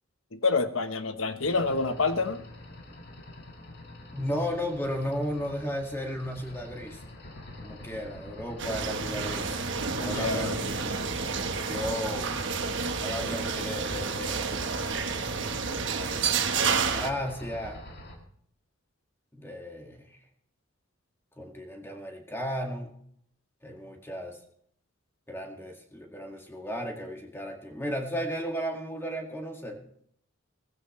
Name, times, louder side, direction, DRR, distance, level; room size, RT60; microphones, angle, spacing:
voice 1, 0.3-2.4 9.9-10.6, left 3 dB, 80° left, 9 dB, 1.1 m, -28 dB
sound 1, 1.4-18.2, left 1 dB, 55° left, 2.1 m, -45 dB
voice 2, 4.1-7.0 7.6-9.7 10.0-10.6 10.8-11.0 11.7-12.4 13.0-14.5 15.8-16.3 16.7-17.8 19.3-20.2 21.4-23.0 23.6-24.4 25.3-29.8, equal, 10° left, 2 dB, 2.0 m, -34 dB
sound 2, 8.6-17.1, right 5 dB, 65° right, 1.3 m, -30 dB
16.5 x 15.5 x 3.2 m, 0.68 s
head